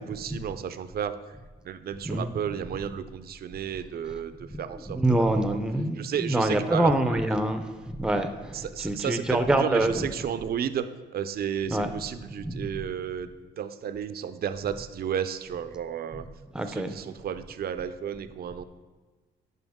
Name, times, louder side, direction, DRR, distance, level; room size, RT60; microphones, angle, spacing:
voice 1, 0.0-1.4 1.6-5.6 6.0-7.2 8.5-13.3 13.6-16.3 16.7-18.6, right 8 dB, 50° right, 11 dB, 0.5 m, -33 dB
voice 2, 4.9-10.1 11.7-11.9 12.4-12.6 16.5-16.9, right 1 dB, 5° right, 8 dB, 0.5 m, -25 dB
9.2 x 5.4 x 3.6 m, 1.3 s
cardioid pair, 90°, 20 cm